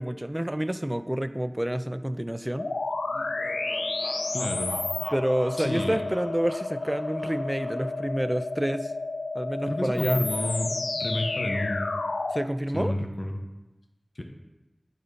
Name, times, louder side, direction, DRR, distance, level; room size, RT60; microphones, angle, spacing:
voice 1, 0.0-2.7 5.1-8.9 9.3-10.2 12.3-12.9, right 1 dB, 20° right, 12 dB, 0.4 m, -28 dB
sound 1, 2.6-12.5, left 3 dB, 85° left, 0.3 m, -31 dB
sound 2, 3.1-8.2, right 1 dB, 50° right, 1.1 m, -44 dB
voice 2, 4.3-4.8 5.6-6.0 9.7-11.8 12.7-13.4 14.2-14.3, left 1 dB, 60° left, 4 dB, 1.0 m, -30 dB
9.5 x 4.3 x 5.3 m, 1.1 s
wide cardioid pair, 40°, 0 cm